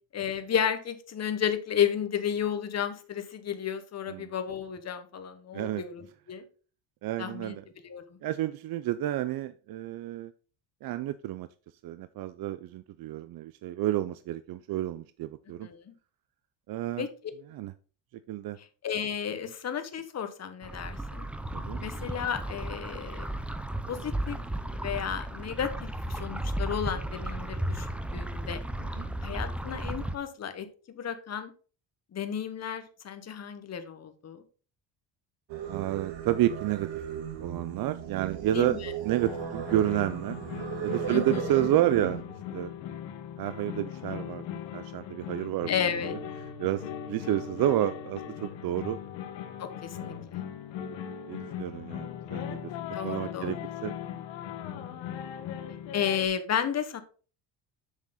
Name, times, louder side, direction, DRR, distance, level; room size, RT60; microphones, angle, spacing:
voice 1, 0.1-6.4 7.2-7.5 7.8-8.2 15.6-15.9 17.0-17.1 18.8-21.2 21.8-23.3 23.9-24.4 24.7-28.6 29.2-31.5 32.1-34.4 38.5-38.9 41.1-41.7 45.7-46.1 49.6-50.4 52.9-53.5 55.9-57.0, left 8 dB, 35° left, 9 dB, 1.2 m, -33 dB
voice 2, 5.5-5.8 7.0-7.6 8.2-10.3 10.8-11.5 11.8-15.7 16.7-17.1 17.5-17.7 18.3-18.6 21.5-21.8 28.8-29.1 35.7-37.0 37.4-38.8 39.0-40.4 40.8-42.2 42.5-42.7 43.4-44.5 44.7-45.7 46.6-49.0 50.0-50.2 51.3-52.7 53.0-53.6 53.8-53.9, right 13 dB, 55° right, 13 dB, 0.5 m, -30 dB
sound 1, 20.6-30.1, right 1 dB, 5° right, 0.5 m, -34 dB
Singing, 35.5-42.2, right 9 dB, 80° right, 1.8 m, -37 dB
sound 2, 39.2-56.3, left 9 dB, 80° left, 1.3 m, -39 dB
7.2 x 6.5 x 3.8 m, 0.38 s
cardioid pair, 125°, 44 cm